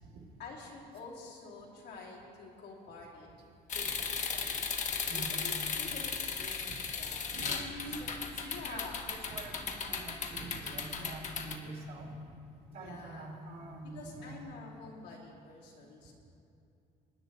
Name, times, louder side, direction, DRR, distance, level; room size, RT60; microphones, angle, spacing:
voice 1, 0.4-3.3 3.7-7.3 8.0-8.1 8.4-9.0 12.7-13.3 13.9-16.1, left 4 dB, 80° left, -4 dB, 2.7 m, -48 dB
sound 1, 3.7-11.6, left 5 dB, 45° left, 1.1 m, -36 dB
voice 2, 5.1-5.6 5.8-6.0 6.7-6.8 7.2-12.2 12.7-14.4, right 2 dB, 70° right, -2 dB, 3.1 m, -45 dB
20.0 x 9.4 x 4.0 m, 2.7 s
cardioid pair, 110°, 17 cm